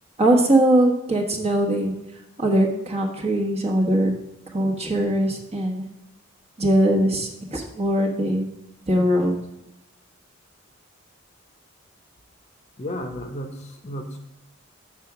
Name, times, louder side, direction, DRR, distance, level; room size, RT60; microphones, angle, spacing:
voice 1, 0.2-1.9 2.4-4.1 4.5-5.8 6.6-8.5 8.9-9.4, right 1 dB, 30° right, 0 dB, 1.2 m, -21 dB
voice 2, 12.8-14.2, equal, 35° left, 4 dB, 0.8 m, -33 dB
6.8 x 4.9 x 5.8 m, 0.93 s
head